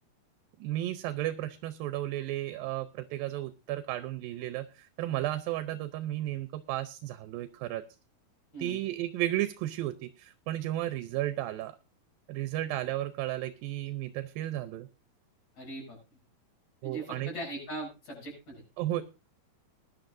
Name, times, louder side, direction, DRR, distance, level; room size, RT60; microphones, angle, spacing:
voice 1, 0.6-7.8 8.6-11.8 12.3-14.9 16.8-17.3 18.8-19.0, right 14 dB, 80° right, 11 dB, 2.4 m, -33 dB
voice 2, 15.5-16.0 16.8-18.6, right 2 dB, 50° left, -1 dB, 8.4 m, -40 dB
20.5 x 11.5 x 2.6 m, 0.29 s
omnidirectional pair, 4.2 m